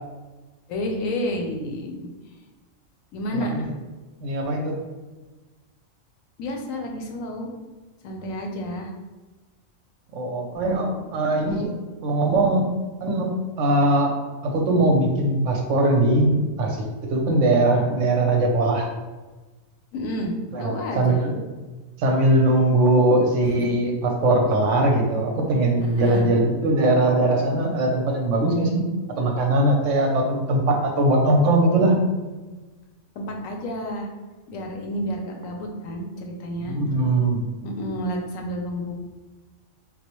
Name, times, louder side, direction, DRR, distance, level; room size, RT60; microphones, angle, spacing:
voice 1, 0.7-2.4 3.1-3.7 6.4-7.5 8.0-8.9 19.9-21.2 23.6-23.7 25.8-26.3 33.2-34.1 34.5-36.8 37.6-38.9, equal, 75° left, 2 dB, 1.0 m, -30 dB
voice 2, 3.3-3.6 4.2-4.8 10.1-11.7 12.0-12.7 13.0-14.1 14.4-16.8 17.1-18.9 20.5-21.4 22.0-28.9 29.2-32.1 36.7-37.4, right 1 dB, 70° right, 1 dB, 0.9 m, -20 dB
4.1 x 2.0 x 2.9 m, 1.2 s
omnidirectional pair, 1.4 m